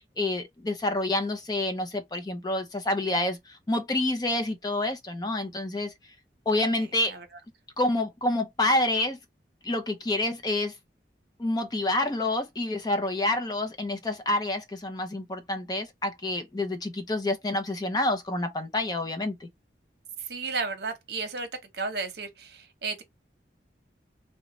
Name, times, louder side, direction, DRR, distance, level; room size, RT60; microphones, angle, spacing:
voice 1, 0.2-5.9 6.5-7.1 7.8-9.2 9.6-10.7 11.4-19.5, left 2 dB, 20° left, 0.5 m, -28 dB
voice 2, 20.3-21.5 21.7-23.0, right 4 dB, 65° right, 0.8 m, -33 dB
3.8 x 2.1 x 2.9 m
head